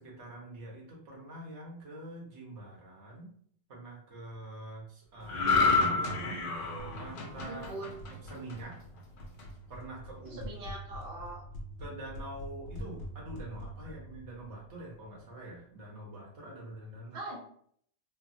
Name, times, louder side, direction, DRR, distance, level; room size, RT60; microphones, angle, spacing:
voice 1, 0.0-3.3 3.7-7.6 8.1-8.8 9.7-10.5 11.8-17.2, right 1 dB, 75° right, -3 dB, 1.3 m, -45 dB
sound 1, 5.3-8.8 9.2-9.4, left 4 dB, 55° left, 0.7 m, -29 dB
sound 2, 6.8-15.4, equal, 90° left, 0.9 m, -46 dB
voice 2, 7.5-7.9 10.3-11.4 17.1-17.4, right 2 dB, 60° right, -3 dB, 0.9 m, -41 dB
3.3 x 2.1 x 2.6 m, 0.62 s
omnidirectional pair, 1.2 m